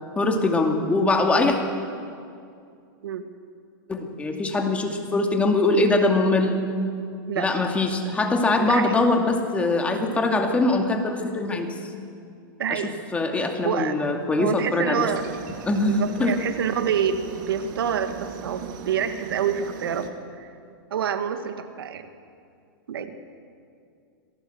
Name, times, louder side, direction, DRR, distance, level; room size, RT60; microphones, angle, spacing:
voice 1, 0.2-1.6 3.9-6.6 7.4-11.7 12.7-12.8 13.1-15.0 15.7-16.3, left 2 dB, 10° left, 3 dB, 2.4 m, -22 dB
voice 2, 8.6-9.0 12.6-12.9 13.6-13.9 14.4-15.3 15.8-20.1 20.4-20.5 20.9-22.1 22.9-23.2, right 8 dB, 85° right, 8 dB, 2.0 m, -27 dB
Aircraft, 15.0-20.1, right 8 dB, 55° right, 2.4 m, -38 dB
26.5 x 18.5 x 8.0 m, 2.4 s
supercardioid pair, 145°, 12 cm